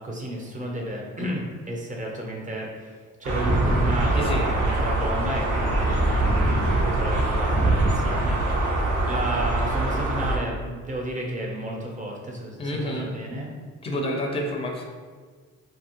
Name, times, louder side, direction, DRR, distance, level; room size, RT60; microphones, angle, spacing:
voice 1, 0.0-2.9 3.2-6.0 6.3-8.4 9.1-13.5, right 1 dB, 25° right, -1 dB, 0.7 m, -32 dB
sound 1, 3.2-10.4, right 2 dB, 80° right, 0.7 m, -23 dB
voice 2, 12.6-13.1 13.8-14.8, equal, 20° left, 1 dB, 0.5 m, -28 dB
3.0 x 2.4 x 2.9 m, 1.5 s
cardioid pair, 90°, 30 cm